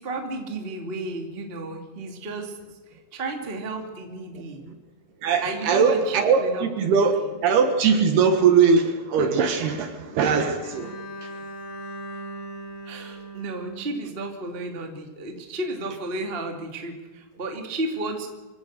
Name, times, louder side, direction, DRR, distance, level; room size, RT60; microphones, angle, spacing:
voice 1, 0.0-2.6 2.9-4.8 5.4-7.4 12.8-18.3, right 2 dB, 20° right, 3 dB, 1.4 m, -33 dB
voice 2, 5.2-10.9, right 5 dB, 65° right, 7 dB, 2.9 m, -21 dB
Bowed string instrument, 10.6-14.7, right 1 dB, 60° left, 4.9 m, -39 dB
25.5 x 16.5 x 6.7 m, 1.2 s
omnidirectional pair, 5.7 m